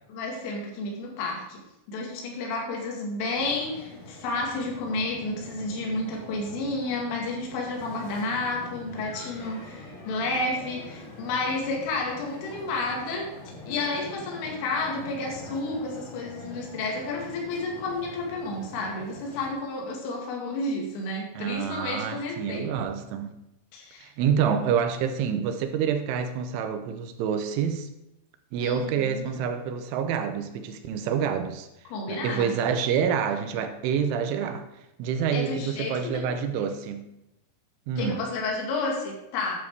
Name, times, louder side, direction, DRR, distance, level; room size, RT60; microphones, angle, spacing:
voice 1, 0.1-1.6 1.9-22.7 23.7-24.1 28.6-28.8 29.1-29.3 31.9-32.6 35.3-36.2 36.6-36.7 38.0-39.7, left 2 dB, 75° left, 0 dB, 4.6 m, -31 dB
sound 1, 3.4-19.5, left 2 dB, 50° left, 4.5 m, -44 dB
voice 2, 21.4-23.3 24.0-27.9 28.5-31.7 32.1-34.7 35.0-37.0 37.9-38.2, right 7 dB, 75° right, 7 dB, 3.2 m, -27 dB
10.5 x 9.1 x 4.7 m, 0.89 s
omnidirectional pair, 5.9 m